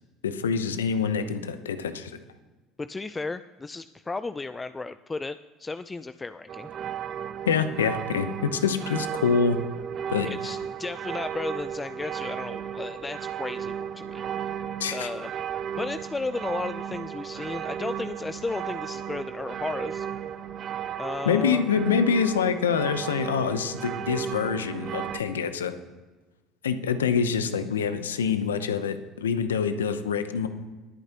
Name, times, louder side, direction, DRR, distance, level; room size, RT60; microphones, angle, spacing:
voice 1, 0.2-2.2 7.5-9.6 10.1-10.3 14.8-15.1 21.2-25.7 26.6-30.5, left 6 dB, 90° left, 10 dB, 0.8 m, -26 dB
voice 2, 2.8-6.7 10.2-14.5 14.9-15.3 15.8-20.1 21.0-21.7, left 3 dB, 20° left, 12 dB, 0.5 m, -34 dB
sound 1, 6.5-25.2, right 9 dB, 50° right, 0.7 m, -34 dB
20.5 x 8.9 x 3.0 m, 1.2 s
hypercardioid pair, 65°, 0 cm